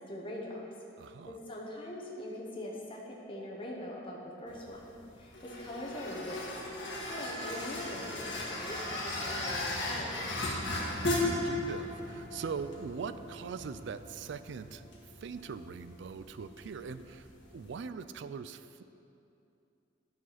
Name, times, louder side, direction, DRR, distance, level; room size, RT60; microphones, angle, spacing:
voice 1, 0.1-0.6 1.2-3.0 3.3-6.5 7.1-10.4, left 1 dB, 30° left, -3 dB, 1.1 m, -42 dB
voice 2, 1.0-1.4 11.2-14.8 15.2-17.3 17.5-18.8, right 5 dB, 65° right, 12 dB, 0.4 m, -41 dB
sound 1, 4.5-17.8, left 1 dB, 70° left, 1.5 m, -37 dB
10.5 x 4.9 x 5.8 m, 2.7 s
head